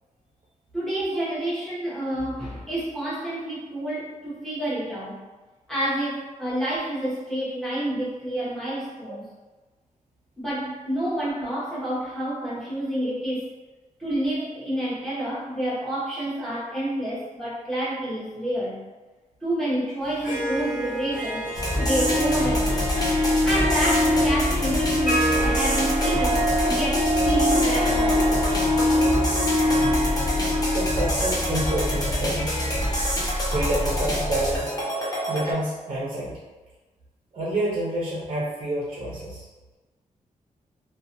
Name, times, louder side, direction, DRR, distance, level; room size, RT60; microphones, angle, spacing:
voice 1, 0.7-5.2 5.7-9.2 10.4-13.5 14.0-18.8 19.4-21.5 21.8-22.9 23.4-28.5, right 1 dB, 5° left, -9 dB, 0.9 m, -29 dB
Harp, 20.0-34.0, left 1 dB, 90° left, 0.9 m, -25 dB
sound 1, 21.5-35.5, left 1 dB, 25° left, 0.5 m, -26 dB
voice 2, 30.7-32.6 33.5-34.7 35.3-36.4 37.3-39.5, right 1 dB, 40° right, -5 dB, 0.5 m, -28 dB
2.4 x 2.2 x 2.5 m, 1.2 s
wide cardioid pair, 125°, 14 cm